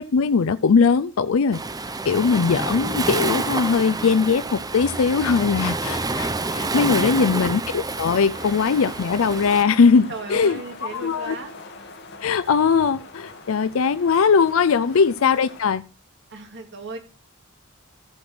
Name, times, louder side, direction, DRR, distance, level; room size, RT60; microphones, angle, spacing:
voice 1, 0.0-1.6 2.1-11.4 12.2-15.8, left 5 dB, 75° left, 0.5 m, -20 dB
Waves surf, 1.5-9.6, right 3 dB, 20° right, 0.8 m, -28 dB
sound 1, 8.3-15.6, left 3 dB, 55° left, 2.5 m, -42 dB
voice 2, 10.1-11.6 14.8-15.1 16.3-17.0, right 3 dB, 55° right, 2.7 m, -36 dB
14.5 x 5.0 x 6.1 m
head